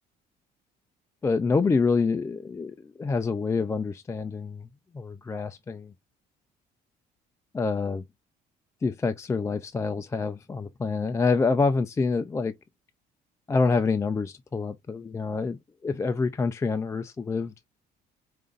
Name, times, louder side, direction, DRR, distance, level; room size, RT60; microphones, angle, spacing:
voice 1, 1.2-4.7 4.9-5.9 7.5-8.0 8.8-12.5 13.5-17.5, left 4 dB, 15° left, 0.3 m, -27 dB
5.1 x 2.5 x 2.4 m
cardioid pair, 110°, 17 cm